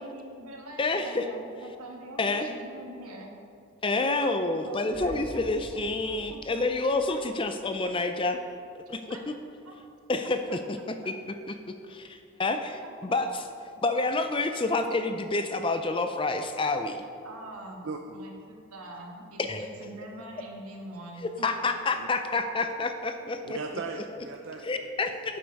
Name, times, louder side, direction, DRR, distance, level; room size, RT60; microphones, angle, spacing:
voice 1, 0.0-3.3 4.0-5.4 5.7-5.8 6.3-6.6 7.1-7.2 9.1-9.2 9.6-9.7 10.5-10.6 12.8-12.9 17.2-17.9 18.1-21.2 23.4-23.6, right 1 dB, 85° right, 0 dB, 1.6 m, -44 dB
voice 2, 0.8-1.3 2.2-2.5 3.8-8.4 8.7-9.4 10.1-11.1 11.5-13.3 13.8-17.0 19.4-19.7 21.2-23.6 24.6-25.4, left 3 dB, 25° left, 8 dB, 0.4 m, -28 dB
sound 1, 4.9-7.9, left 1 dB, 65° left, 1.0 m, -47 dB
voice 3, 17.8-18.2 22.0-22.1 23.4-25.2, right 4 dB, 55° right, 3 dB, 0.5 m, -38 dB
7.9 x 7.9 x 5.3 m, 2.4 s
head